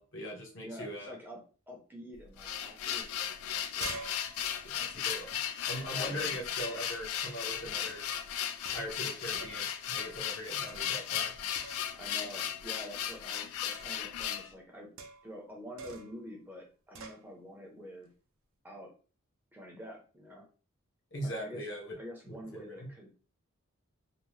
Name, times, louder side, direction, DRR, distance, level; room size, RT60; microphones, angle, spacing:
voice 1, 0.0-1.1 4.6-5.4 5.7-8.0 8.7-11.3 21.1-22.0 22.3-22.9, equal, 55° left, 0 dB, 0.8 m, -41 dB
voice 2, 0.6-3.2 3.8-4.1 5.9-6.4 11.9-14.9 15.2-18.1 18.6-18.9 19.5-20.5 21.2-21.6 22.0-23.1, left 1 dB, 10° right, -1 dB, 0.5 m, -47 dB
sound 1, 2.1-14.5, left 9 dB, 90° left, 0.3 m, -36 dB
sound 2, 3.0-3.1 3.4-6.1 6.8-7.2 7.9-8.2 8.6-9.7 10.0-10.3 10.7-11.3 11.5-12.1 13.7-14.1 15.0-15.4 15.8-16.2 16.9-17.2, right 4 dB, 70° right, 0.5 m, -48 dB
2.7 x 2.0 x 3.1 m, 0.37 s
head